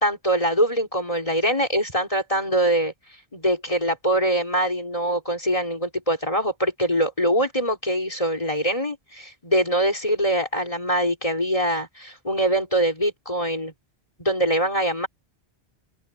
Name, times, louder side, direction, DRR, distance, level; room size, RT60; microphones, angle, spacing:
voice 1, 0.0-2.9 3.3-13.7 14.2-15.1, right 1 dB, 30° left, 3.4 m, -23 dB
omnidirectional pair, 1.1 m